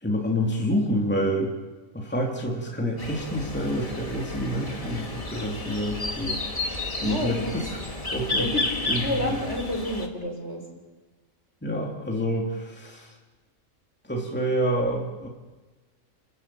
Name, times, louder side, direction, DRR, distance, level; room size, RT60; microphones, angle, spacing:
voice 1, 0.0-1.5 1.9-6.4 7.0-7.7 8.1-8.5 8.9-9.4 11.6-13.1 14.1-15.3, equal, 10° left, -1 dB, 2.9 m, -28 dB
sound 1, 3.0-10.1, left 2 dB, 25° left, 2.0 m, -32 dB
voice 2, 7.0-7.5 8.4-8.7 9.0-10.6, left 1 dB, 55° left, 0 dB, 5.8 m, -29 dB
29.0 x 14.0 x 9.0 m, 1.2 s
omnidirectional pair, 1.4 m